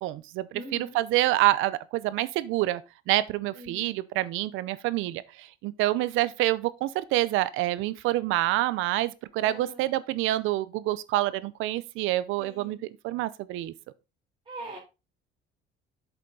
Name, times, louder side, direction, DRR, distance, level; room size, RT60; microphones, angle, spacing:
voice 1, 0.0-2.8 3.1-13.7, right 16 dB, 85° right, 0.7 m, -27 dB
voice 2, 0.5-1.0 3.5-4.0 9.4-9.9 12.4-12.9 14.5-14.8, right 1 dB, 25° right, 3.5 m, -42 dB
8.2 x 7.0 x 3.9 m
cardioid pair, 140°, 20 cm